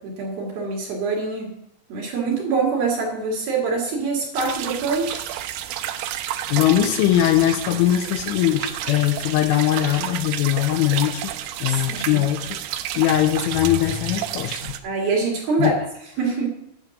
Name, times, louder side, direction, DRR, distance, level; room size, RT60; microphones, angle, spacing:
voice 1, 0.0-1.5 1.9-5.3 11.7-12.2 14.8-15.8 16.2-16.5, right 4 dB, 60° right, -1 dB, 3.0 m, -24 dB
sound 1, 4.4-14.8, right 11 dB, 90° right, 2.6 m, -31 dB
voice 2, 6.5-11.3 11.6-12.6 12.9-14.7 15.6-15.7, left 12 dB, 80° left, 6 dB, 3.0 m, -21 dB
9.8 x 7.1 x 6.3 m, 0.79 s
omnidirectional pair, 6.0 m